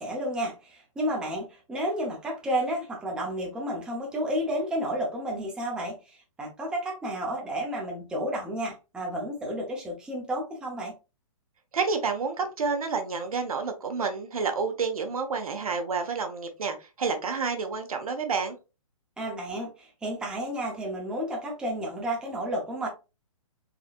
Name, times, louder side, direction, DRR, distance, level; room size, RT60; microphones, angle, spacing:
voice 1, 0.0-10.9 19.2-22.9, equal, 5° right, 0.6 m, -31 dB
voice 2, 11.7-18.6, right 5 dB, 85° right, 1.1 m, -29 dB
4.0 x 3.0 x 2.4 m
hypercardioid pair, 155°, 18 cm